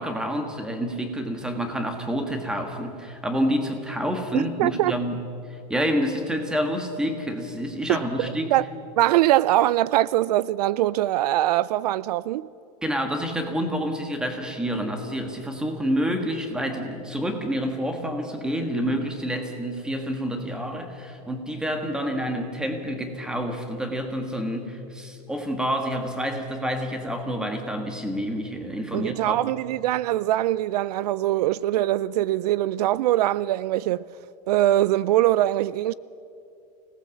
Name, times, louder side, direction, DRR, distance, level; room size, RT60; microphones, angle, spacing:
voice 1, 0.0-5.2 5.5-8.5 12.8-29.4, equal, 5° right, 1.6 m, -28 dB
voice 2, 4.3-4.9 7.9-8.0 8.5-8.7 9.0-12.5 28.9-34.0 34.5-35.9, right 14 dB, 70° right, 0.5 m, -22 dB
25.0 x 18.5 x 7.2 m
supercardioid pair, 170°, 21 cm